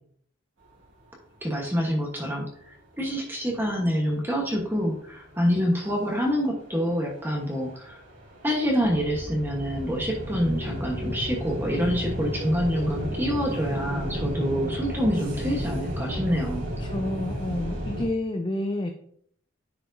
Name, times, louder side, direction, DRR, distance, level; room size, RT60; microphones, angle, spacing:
voice 1, 1.4-8.0 8.4-16.6, equal, 10° right, -1 dB, 1.1 m, -26 dB
sound 1, 3.6-3.7 4.0-6.2 6.6-18.0, equal, 75° right, 2.4 m, -33 dB
voice 2, 16.8-18.9, left 1 dB, 25° left, 4 dB, 0.5 m, -30 dB
10.0 x 4.9 x 2.6 m, 0.63 s
head